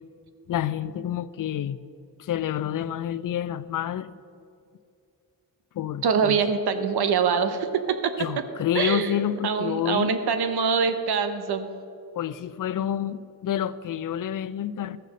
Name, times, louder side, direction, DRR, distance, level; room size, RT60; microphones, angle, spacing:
voice 1, 0.5-1.8 2.2-4.1 5.7-6.4 8.2-10.1 12.1-15.0, left 10 dB, 60° left, 16 dB, 0.5 m, -28 dB
voice 2, 6.0-8.1 8.7-11.7, right 6 dB, 90° right, 9 dB, 0.9 m, -24 dB
13.5 x 6.7 x 6.3 m, 2.5 s
cardioid pair, 95°, 37 cm